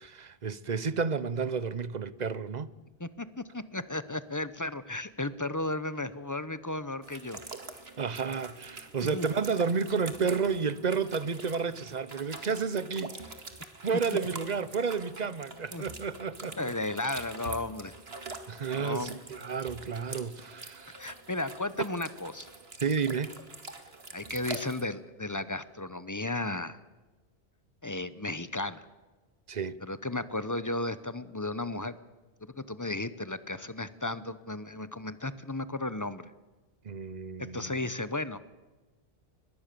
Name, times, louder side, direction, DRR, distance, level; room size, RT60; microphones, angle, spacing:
voice 1, 0.0-2.7 8.0-13.3 13.8-16.6 18.5-21.0 22.8-23.3 29.5-29.8 36.8-37.8, right 5 dB, 45° right, 0.9 m, -31 dB
voice 2, 3.0-7.4 9.0-9.3 15.7-15.8 16.6-17.9 18.8-19.2 21.0-22.5 24.1-26.8 27.8-28.9 29.9-32.0 32.4-36.3 37.4-38.4, left 2 dB, 20° left, 0.9 m, -34 dB
sound 1, 7.0-24.8, right 3 dB, 75° right, 2.3 m, -45 dB
23.0 x 21.0 x 6.9 m
omnidirectional pair, 1.0 m